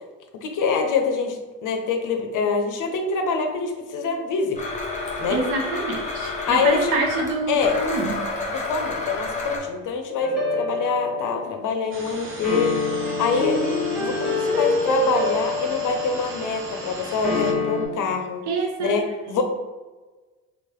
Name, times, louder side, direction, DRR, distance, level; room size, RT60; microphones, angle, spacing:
voice 1, 0.4-4.6 5.2-5.4 6.5-6.9 7.5-7.8 8.5-12.8 13.2-13.6 14.0-18.4 18.8-19.4, left 5 dB, 55° left, 5 dB, 0.6 m, -25 dB
Domestic sounds home sounds, 4.6-9.6, left 3 dB, 20° left, 0.8 m, -30 dB
voice 2, 5.3-8.3 18.5-19.4, right 3 dB, 75° right, 2 dB, 0.7 m, -27 dB
sound 1, 10.2-11.6 12.4-16.4 17.2-17.9, left 2 dB, ahead, 1.2 m, -25 dB
sound 2, 11.9-17.5, right 2 dB, 35° right, 0.7 m, -37 dB
2.9 x 2.1 x 3.0 m, 1.3 s
hypercardioid pair, 60°, 39 cm